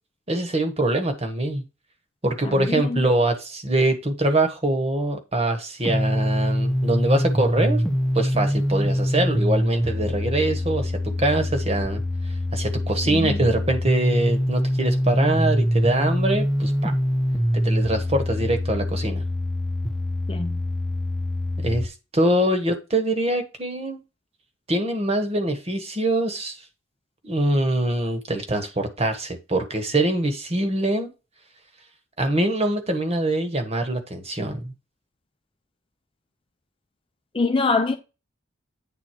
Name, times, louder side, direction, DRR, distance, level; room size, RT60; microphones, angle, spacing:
voice 1, 0.3-1.6 2.2-7.8 8.1-12.0 12.5-16.9 17.5-19.2 21.6-24.0 24.7-26.6 27.2-31.1 32.2-34.7, right 1 dB, 30° right, 1.4 m, -23 dB
voice 2, 2.4-3.0 13.1-13.4 20.3-20.6 37.3-38.0, left 3 dB, 25° left, 0.7 m, -24 dB
sound 1, 5.8-21.9, equal, 5° left, 1.0 m, -24 dB
9.1 x 3.9 x 4.5 m
head